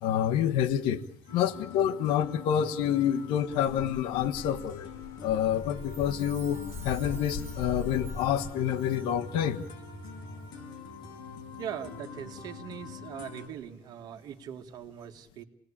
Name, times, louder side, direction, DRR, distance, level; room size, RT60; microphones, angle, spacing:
voice 1, 0.0-1.0 1.3-4.9 5.2-9.7, left 10 dB, 75° left, 12 dB, 1.3 m, -28 dB
sound 1, 1.3-13.5, left 3 dB, 55° left, 6.0 m, -44 dB
sound 2, 3.5-8.5, left 5 dB, 35° left, 1.8 m, -41 dB
Chime, 5.7-9.3 9.6-9.7, right 5 dB, 30° right, 6.1 m, -52 dB
voice 2, 11.6-15.4, right 9 dB, 50° right, 5 dB, 2.1 m, -41 dB
28.0 x 20.0 x 8.7 m, 0.80 s
cardioid pair, 135°, 9 cm